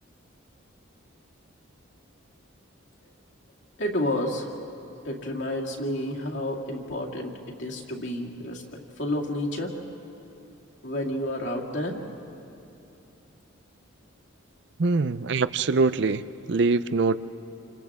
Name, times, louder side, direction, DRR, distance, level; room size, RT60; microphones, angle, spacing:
voice 1, 3.8-4.5 5.0-9.7 10.8-12.0, left 1 dB, 60° left, -2 dB, 2.3 m, -30 dB
voice 2, 14.8-16.2 16.5-17.2, right 3 dB, 55° right, 15 dB, 0.5 m, -23 dB
29.0 x 27.0 x 3.6 m, 2.9 s
head